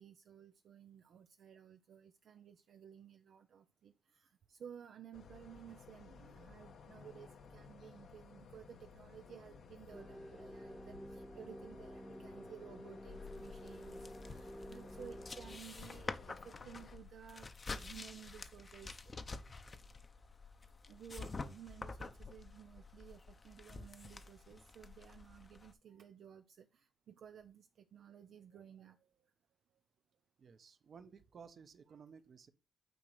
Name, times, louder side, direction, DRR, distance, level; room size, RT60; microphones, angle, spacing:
voice 1, 0.0-17.5 17.8-19.0 20.9-29.0 31.9-32.0, right 8 dB, 75° right, 0.5 m, -56 dB
sound 1, 5.1-17.0, left 5 dB, 75° left, 1.2 m, -57 dB
sound 2, 9.9-15.6, equal, ahead, 0.4 m, -51 dB
sound 3, 13.0-25.7, left 3 dB, 35° left, 0.8 m, -49 dB
voice 2, 30.4-32.5, right 6 dB, 55° right, 0.9 m, -56 dB
9.0 x 3.0 x 6.5 m
cardioid pair, 90°, 0 cm